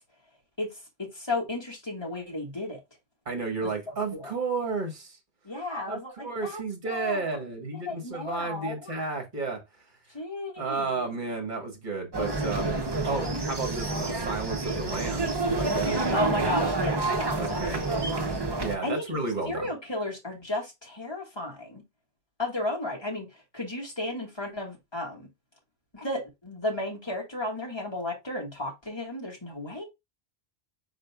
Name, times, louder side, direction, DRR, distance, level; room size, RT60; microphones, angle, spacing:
voice 1, 1.0-2.8 3.6-4.3 5.4-6.6 6.9-7.4 7.7-8.9 10.1-11.1 13.0-13.4 16.1-17.7 18.8-19.2 19.5-21.8 22.4-23.3 23.5-25.3 25.9-29.8, left 2 dB, 25° left, 1.7 m, -34 dB
voice 2, 3.2-5.2 5.9-9.6 10.6-16.0 17.4-17.8 18.6-19.7, right 3 dB, 45° right, 1.5 m, -32 dB
sound 1, 12.1-18.8, right 2 dB, 25° right, 0.6 m, -28 dB
4.9 x 4.6 x 2.3 m
omnidirectional pair, 1.1 m